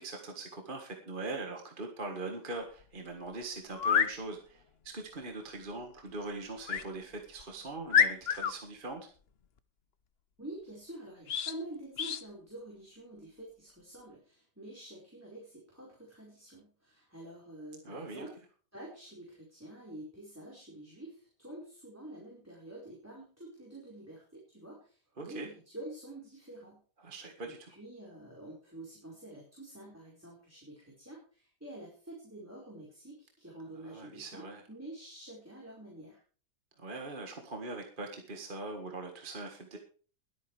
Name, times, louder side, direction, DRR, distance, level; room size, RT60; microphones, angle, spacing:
voice 1, 0.0-9.1 17.8-18.3 25.2-25.5 27.0-27.7 33.8-34.6 36.8-39.8, right 3 dB, 30° right, 2 dB, 1.8 m, -41 dB
sound 1, 2.8-2.9 3.7-4.1 6.7-6.9 7.4-7.5 7.9-8.5 11.3-11.6 12.0-12.2, left 7 dB, 50° left, 0.8 m, -27 dB
voice 2, 10.4-18.4 18.7-26.8 27.4-36.2, right 1 dB, 10° right, -4 dB, 4.8 m, -48 dB
22.0 x 8.9 x 3.4 m, 0.41 s
omnidirectional pair, 1.8 m